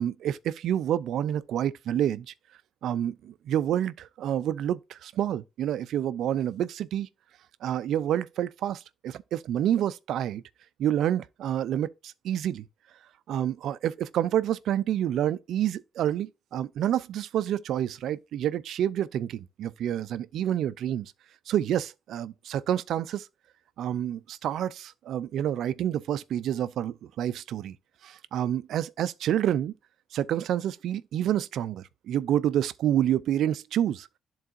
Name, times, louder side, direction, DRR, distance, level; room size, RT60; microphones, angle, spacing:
voice 1, 0.0-2.3 2.8-7.1 7.6-10.4 10.8-12.7 13.3-21.1 21.5-23.3 23.8-27.8 28.0-29.7 30.1-34.1, right 11 dB, 75° right, 0.4 m, -28 dB
11.0 x 3.9 x 2.6 m
cardioid pair, 90°, 0 cm